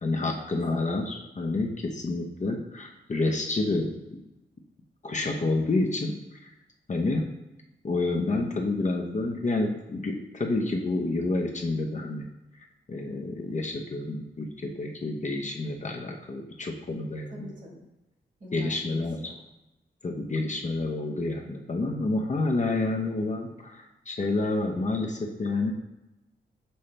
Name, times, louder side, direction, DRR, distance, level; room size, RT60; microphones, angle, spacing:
voice 1, 0.0-3.9 5.0-6.1 6.4-6.5 6.9-7.3 7.8-12.2 12.9-17.5 18.5-19.2 20.0-25.7, left 2 dB, 40° left, 1 dB, 0.7 m, -29 dB
voice 2, 17.3-17.8 18.4-19.3, left 1 dB, 40° right, -1 dB, 1.5 m, -45 dB
5.5 x 2.8 x 3.3 m, 0.98 s
cardioid pair, 50°, 19 cm